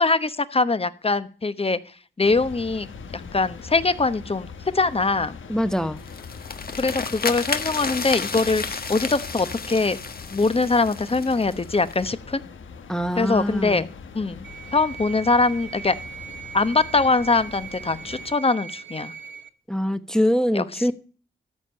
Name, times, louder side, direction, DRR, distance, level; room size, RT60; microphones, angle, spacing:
voice 1, 0.0-1.8 2.2-2.9 3.1-4.5 4.7-5.4 6.8-10.0 10.3-12.4 13.2-13.9 14.1-14.4 14.7-15.9 16.5-19.1 20.5-20.9, left 3 dB, 30° left, 1.1 m, -22 dB
sound 1, 2.2-18.3, left 5 dB, 80° left, 1.3 m, -41 dB
voice 2, 5.5-6.0 12.9-13.8 19.7-20.9, equal, 5° left, 1.1 m, -23 dB
sound 2, 6.0-12.1, left 5 dB, 50° left, 1.4 m, -32 dB
sound 3, 14.4-19.5, right 7 dB, 70° right, 1.1 m, -40 dB
13.5 x 5.2 x 8.7 m
cardioid pair, 60°, 20 cm